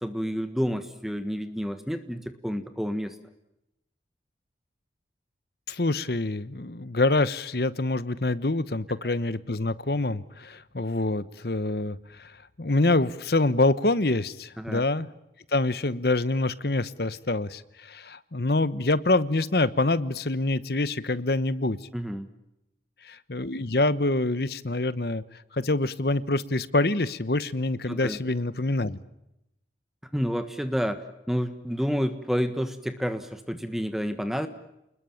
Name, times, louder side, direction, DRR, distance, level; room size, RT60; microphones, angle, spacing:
voice 1, 0.0-3.2 9.0-9.1 14.6-14.9 21.9-22.3 27.9-28.2 30.1-31.0 31.3-34.5, equal, ahead, 9 dB, 1.4 m, -29 dB
voice 2, 5.7-12.3 12.6-15.1 15.5-21.8 23.0-25.2 25.5-29.0, left 2 dB, 60° left, 16 dB, 1.1 m, -26 dB
29.5 x 21.0 x 7.2 m, 0.86 s
head